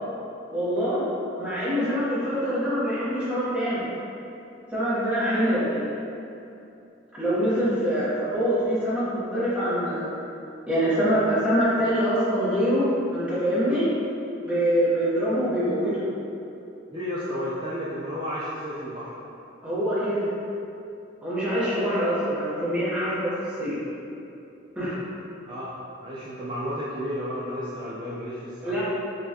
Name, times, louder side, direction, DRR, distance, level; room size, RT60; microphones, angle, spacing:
voice 1, 0.5-1.1 1.4-3.8 4.7-5.9 7.1-10.1 10.7-13.9 14.4-16.0 19.6-20.3 21.2-23.3 23.6-23.8 24.8-25.0 28.6-28.8, equal, 5° right, -11 dB, 1.0 m, -24 dB
voice 2, 16.9-19.2 25.4-25.7 26.0-28.8, equal, 25° right, -9 dB, 0.4 m, -32 dB
5.2 x 2.3 x 2.8 m, 2.8 s
head